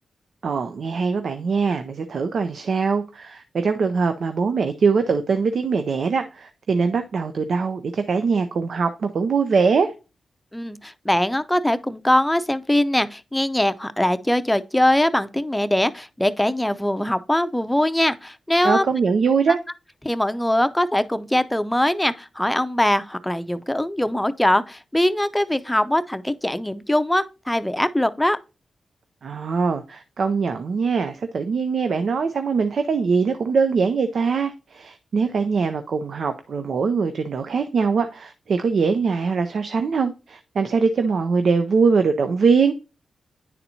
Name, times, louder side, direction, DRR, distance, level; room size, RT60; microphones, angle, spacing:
voice 1, 0.4-9.9 18.6-19.6 29.2-42.7, right 5 dB, 70° right, 0.4 m, -22 dB
voice 2, 10.5-18.9 20.0-28.4, left 1 dB, 10° left, 0.6 m, -22 dB
9.7 x 4.1 x 2.7 m
supercardioid pair, 40°, 0 cm